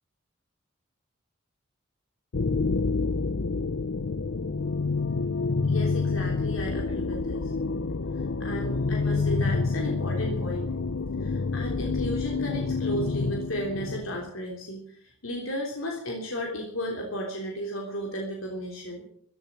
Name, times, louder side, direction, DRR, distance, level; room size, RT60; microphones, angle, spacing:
sound 1, 2.3-14.3, left 4 dB, 70° left, 0.7 m, -28 dB
voice 1, 5.7-7.5 8.1-10.7 11.2-19.0, equal, 85° left, 0 dB, 3.4 m, -34 dB
15.0 x 12.5 x 7.5 m, 0.64 s
head